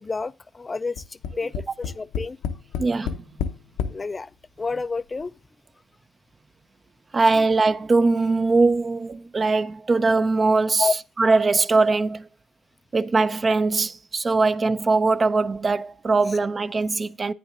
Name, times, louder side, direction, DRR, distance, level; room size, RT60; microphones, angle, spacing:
voice 1, 0.0-1.5 1.8-2.4 3.9-4.3 4.6-5.3 7.4-7.5 10.8-10.9, left 4 dB, 30° left, 0.3 m, -29 dB
Tap, 1.0-4.0 4.8-4.9 5.2-5.3, left 7 dB, 70° left, 0.6 m, -29 dB
voice 2, 2.8-3.2 7.1-10.9 11.2-12.3 12.9-17.3, right 3 dB, 30° right, 0.5 m, -21 dB
10.0 x 9.2 x 2.5 m
figure-of-eight pair, 45°, 0 cm